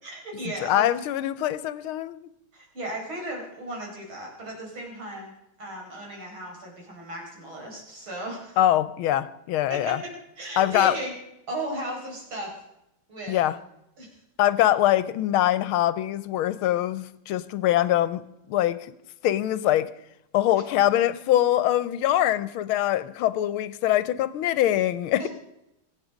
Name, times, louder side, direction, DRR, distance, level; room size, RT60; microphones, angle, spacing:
voice 1, 0.0-0.9 2.5-5.3 5.6-8.6 9.7-10.1 10.4-11.1 11.5-12.5 13.1-13.4 14.0-14.1 25.2-25.3, right 1 dB, 70° right, -1 dB, 5.8 m, -35 dB
voice 2, 0.6-2.3 8.6-10.0 10.6-11.0 13.3-13.6 14.4-18.9 19.2-19.9 20.3-25.3, left 13 dB, 80° left, 16 dB, 1.6 m, -23 dB
24.0 x 8.9 x 5.1 m, 0.85 s
omnidirectional pair, 2.4 m